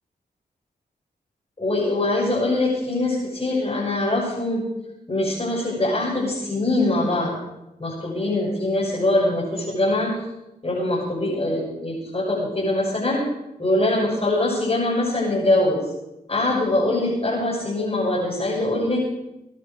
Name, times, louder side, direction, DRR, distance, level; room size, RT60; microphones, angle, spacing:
voice 1, 1.6-4.6 5.1-7.4 7.8-10.2 10.6-13.3 13.6-15.8 16.3-19.0, left 2 dB, 35° left, -6 dB, 6.7 m, -23 dB
21.5 x 11.0 x 5.3 m, 0.92 s
cardioid pair, 50°, 16 cm